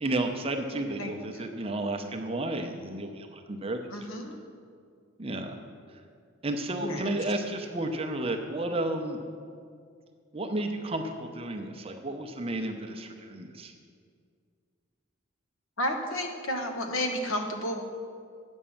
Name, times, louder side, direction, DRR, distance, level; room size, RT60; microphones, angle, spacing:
voice 1, 0.0-4.1 5.2-5.6 5.9-6.0 6.4-9.2 10.3-13.7, right 1 dB, 25° right, 4 dB, 0.6 m, -32 dB
voice 2, 0.7-1.4 3.9-4.4 6.8-7.1 15.8-17.8, left 1 dB, 80° left, 4 dB, 1.1 m, -32 dB
8.7 x 6.3 x 7.0 m, 2.2 s
head